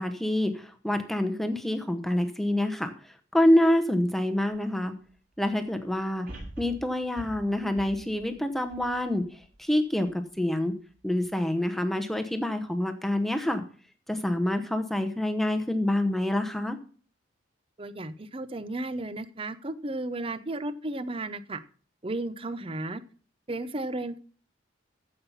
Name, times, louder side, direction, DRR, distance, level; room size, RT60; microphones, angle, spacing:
voice 1, 0.0-4.9 5.4-6.3 6.6-10.7 11.0-13.6 14.1-16.8, left 1 dB, ahead, 6 dB, 0.8 m, -27 dB
sound 1, 4.5-4.6 6.3-9.6 10.1-10.2, right 1 dB, 50° right, 6.8 m, -45 dB
voice 2, 17.8-21.6 22.0-23.0 23.5-24.2, right 2 dB, 30° right, 14 dB, 0.6 m, -34 dB
14.5 x 5.6 x 5.5 m, 0.42 s
head